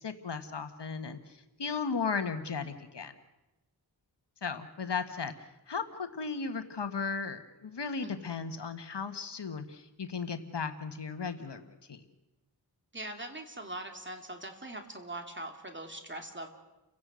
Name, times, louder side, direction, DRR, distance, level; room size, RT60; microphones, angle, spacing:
voice 1, 0.0-3.1 4.4-5.3 5.7-12.0, left 5 dB, 75° left, 8 dB, 1.5 m, -36 dB
voice 2, 8.0-8.4 12.9-16.5, right 1 dB, 25° right, 4 dB, 2.7 m, -42 dB
30.0 x 16.5 x 6.3 m, 1.0 s
wide cardioid pair, 75°, 42 cm